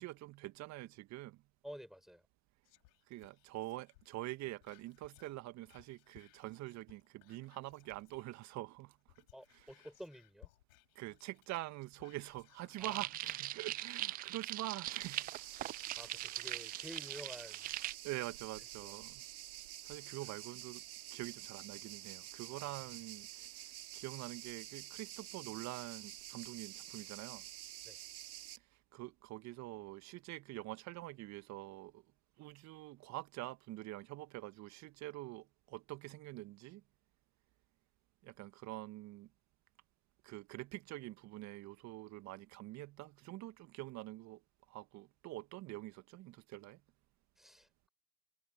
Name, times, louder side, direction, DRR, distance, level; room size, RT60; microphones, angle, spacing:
voice 1, 0.0-1.4 3.1-9.0 9.5-9.7 11.0-15.3 18.0-19.2 19.8-20.8 21.1-27.5 28.9-32.0 32.4-36.8 38.2-39.3 40.2-44.4 44.7-46.8, right 17 dB, 35° right, 1.8 m, -46 dB
voice 2, 1.6-2.2 9.3-10.5 12.8-13.0 16.0-17.6 18.8-18.9 22.5-22.8 27.8-28.0 47.4-47.9, equal, ahead, 5.4 m, -51 dB
Whispering, 2.6-8.6 9.0-12.9 13.4-13.5, left 24 dB, 55° left, 4.0 m, -66 dB
sound 1, 12.8-17.9, right 15 dB, 20° right, 0.5 m, -41 dB
sound 2, 15.0-28.6, right 13 dB, 65° right, 3.5 m, -50 dB
hypercardioid pair, 100°, 46 cm